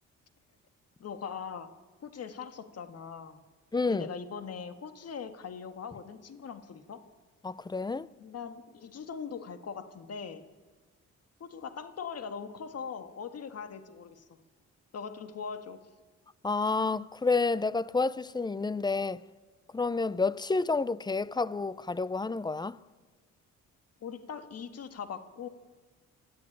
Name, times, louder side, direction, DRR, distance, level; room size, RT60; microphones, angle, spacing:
voice 1, 1.0-1.7 2.0-3.4 3.9-7.0 8.2-10.5 11.4-14.4 14.9-15.8 24.0-25.5, left 6 dB, 55° left, 1.7 m, -41 dB
voice 2, 3.7-4.1 7.4-8.1 16.4-19.2 19.7-22.8, left 3 dB, 15° left, 0.6 m, -29 dB
21.5 x 13.5 x 10.0 m
cardioid pair, 90°, 30 cm